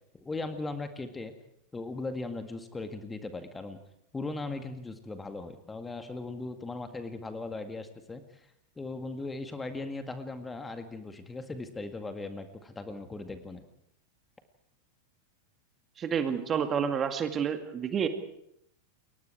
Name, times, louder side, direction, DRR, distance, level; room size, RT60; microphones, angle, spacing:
voice 1, 0.1-1.3 1.7-3.8 4.1-8.5 8.8-13.6, left 3 dB, 10° left, 8 dB, 2.0 m, -38 dB
voice 2, 16.0-18.1, right 7 dB, 25° right, 7 dB, 2.2 m, -29 dB
29.5 x 22.5 x 4.7 m, 0.73 s
figure-of-eight pair, 90°, 0 cm